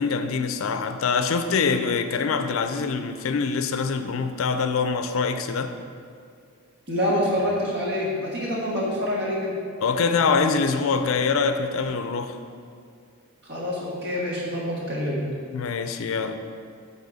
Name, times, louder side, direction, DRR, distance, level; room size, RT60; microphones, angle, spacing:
voice 1, 0.0-5.8 9.8-12.4 15.5-16.4, left 5 dB, 75° left, 0.4 m, -24 dB
voice 2, 6.9-9.5 13.5-15.2, left 1 dB, 50° right, 1.5 m, -26 dB
8.5 x 4.1 x 4.1 m
head